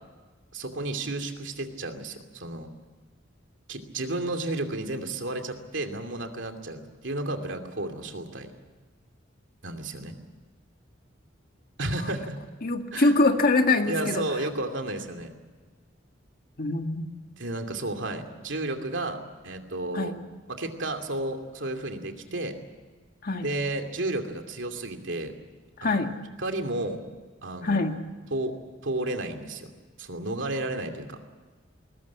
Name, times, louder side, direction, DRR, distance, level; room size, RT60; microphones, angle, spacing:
voice 1, 0.5-2.7 3.7-8.5 9.6-10.2 11.8-12.4 12.9-13.2 13.9-15.3 17.4-19.2 19.4-20.1 20.5-22.6 23.4-25.3 25.8-26.1 26.4-27.0 27.4-27.9 28.3-28.5 28.8-29.7 30.0-31.2, right 2 dB, 70° right, 5 dB, 2.7 m, -32 dB
voice 2, 12.6-14.3 16.6-17.2 19.9-20.2 23.2-23.5 25.8-26.1 27.6-28.0, left 2 dB, 50° left, 5 dB, 1.9 m, -24 dB
21.0 x 20.0 x 8.5 m, 1.4 s
head